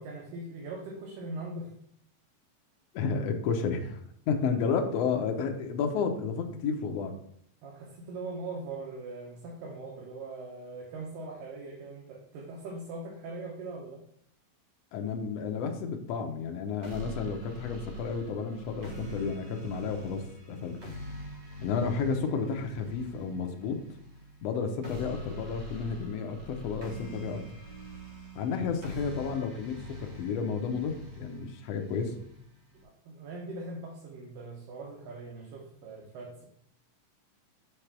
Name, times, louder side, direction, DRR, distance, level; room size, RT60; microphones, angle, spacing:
voice 1, 0.0-1.7 7.6-14.0 32.8-36.5, right 2 dB, 80° right, -1 dB, 2.6 m, -41 dB
voice 2, 2.9-4.0 4.3-7.1 14.9-20.2 20.5-20.8 21.6-23.8 24.4-27.4 28.3-32.1, left 5 dB, 85° left, 3 dB, 1.4 m, -31 dB
sound 1, 16.8-32.8, equal, 60° right, 1.1 m, -44 dB
6.9 x 3.4 x 5.8 m, 0.68 s
omnidirectional pair, 3.9 m